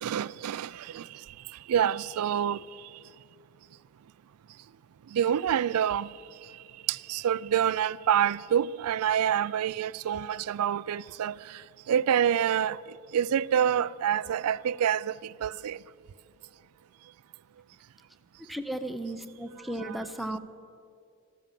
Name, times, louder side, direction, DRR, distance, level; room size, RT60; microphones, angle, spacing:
voice 1, 0.0-1.2 1.5-2.6 5.1-6.1 6.9-15.8 19.8-20.0, right 9 dB, 85° right, 0.3 m, -27 dB
voice 2, 18.4-20.4, right 1 dB, ahead, 0.6 m, -35 dB
14.0 x 13.0 x 7.5 m
head